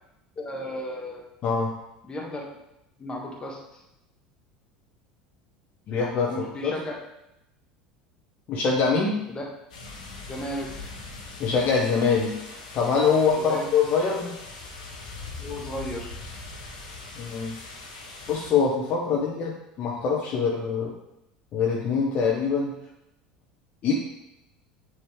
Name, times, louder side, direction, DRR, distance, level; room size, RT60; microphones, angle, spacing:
voice 1, 0.4-1.2 2.0-2.4 3.0-3.8 6.3-6.9 9.3-9.4 10.3-10.7 13.4-13.7 15.4-16.1, equal, 20° left, -1 dB, 1.5 m, -34 dB
voice 2, 1.4-1.8 5.9-6.3 6.6-6.7 8.5-9.2 11.4-12.4 12.7-14.4 17.1-17.6 18.3-20.9 21.5-22.8 23.8-23.9, left 5 dB, 40° left, -3 dB, 1.1 m, -24 dB
sound 1, 9.7-18.5, left 3 dB, 70° left, 1.4 m, -41 dB
9.4 x 3.1 x 3.7 m, 0.85 s
figure-of-eight pair, 70°, 4 cm